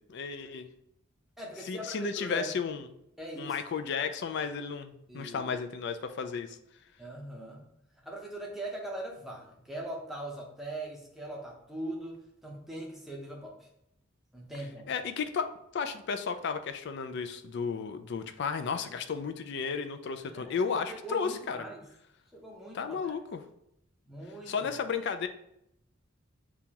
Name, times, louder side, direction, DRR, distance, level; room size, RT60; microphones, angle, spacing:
voice 1, 0.1-0.7 1.6-2.9 3.4-6.6 14.9-21.6 22.7-23.4 24.5-25.3, left 5 dB, 55° left, 9 dB, 0.4 m, -33 dB
voice 2, 1.4-2.5 3.2-3.6 5.1-5.5 7.0-7.6 8.0-13.7 14.3-14.9 20.3-20.6 20.9-21.8 22.3-23.1 24.1-24.7, right 1 dB, ahead, -2 dB, 0.7 m, -41 dB
6.8 x 2.3 x 2.9 m, 0.78 s
head